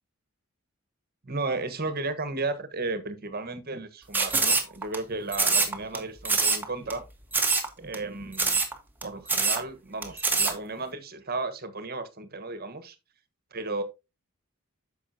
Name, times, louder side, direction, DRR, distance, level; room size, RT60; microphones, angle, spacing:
voice 1, 1.2-7.0 7.8-8.6 9.0-13.0 13.5-13.8, right 3 dB, 45° right, 1.4 m, -34 dB
sound 1, 4.1-5.0 5.3-6.0 6.2-6.6 6.9-7.0 7.3-7.7 7.9-8.0 8.3-8.7 9.0-9.1 9.3-9.6 10.0-10.5, right 4 dB, 10° right, 1.5 m, -24 dB
10.0 x 6.8 x 2.8 m
head